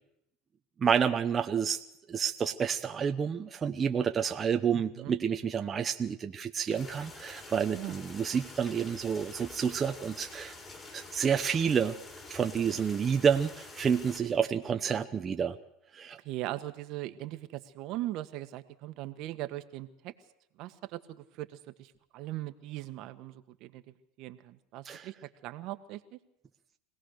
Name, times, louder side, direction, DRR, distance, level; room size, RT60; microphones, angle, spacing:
voice 1, 0.8-1.8 2.1-10.5 10.9-11.9 12.3-15.6 15.9-16.2 24.8-25.1, right 7 dB, 30° right, 5 dB, 1.0 m, -29 dB
voice 2, 4.7-5.1 7.7-8.0 16.2-20.1 20.6-23.8 24.2-25.1 25.4-26.2, right 16 dB, 60° right, 10 dB, 1.6 m, -40 dB
sound 1, 6.7-14.2, left 3 dB, 25° left, 7.3 m, -47 dB
25.0 x 18.0 x 6.6 m, 0.78 s
supercardioid pair, 105°, 0 cm